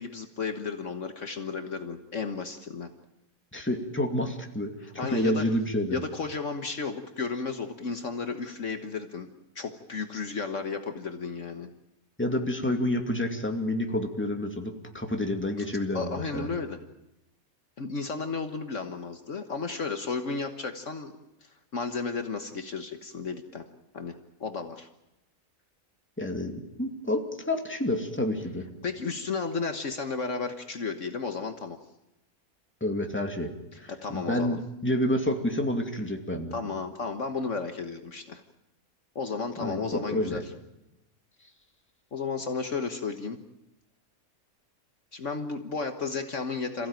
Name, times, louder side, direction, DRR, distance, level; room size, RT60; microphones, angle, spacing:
voice 1, 0.0-2.9 5.0-5.4 5.9-9.3 9.6-11.7 15.9-16.8 17.8-21.1 21.4-23.6 23.9-24.1 24.4-24.9 28.8-31.8 33.9-34.6 36.5-38.4 39.2-40.4 42.1-43.4 45.1-46.9, left 4 dB, 60° left, 6 dB, 1.7 m, -33 dB
voice 2, 3.5-6.0 12.2-16.5 26.2-28.6 32.8-33.5 33.8-36.6 39.6-40.4, left 1 dB, 10° left, 3 dB, 2.5 m, -29 dB
27.5 x 16.0 x 9.1 m, 0.94 s
omnidirectional pair, 1.5 m